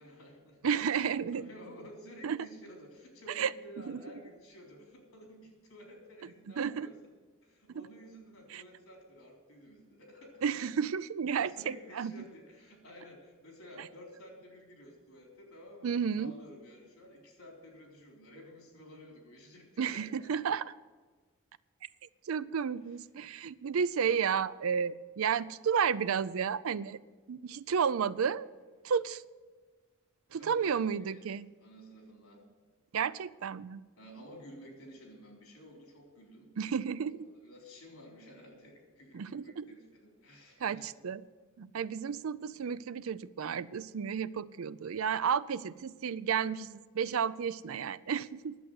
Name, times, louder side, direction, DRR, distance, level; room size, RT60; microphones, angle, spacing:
voice 1, 0.0-0.7 1.3-7.0 7.4-10.4 11.3-20.4 30.4-31.3 31.6-32.4 34.0-36.5 37.4-40.9, equal, 85° left, 0 dB, 3.8 m, -52 dB
voice 2, 0.6-1.5 2.2-2.4 3.4-3.5 3.9-4.0 6.6-6.9 7.7-7.9 8.5-8.6 10.4-12.1 13.8-13.9 15.8-16.3 19.8-20.7 22.3-27.0 27.3-28.5 28.8-29.2 30.3-31.5 32.9-33.8 36.6-37.3 39.1-39.7 40.6-41.2 41.6-48.6, right 7 dB, 75° right, 17 dB, 0.4 m, -32 dB
11.0 x 7.8 x 9.3 m, 1.3 s
head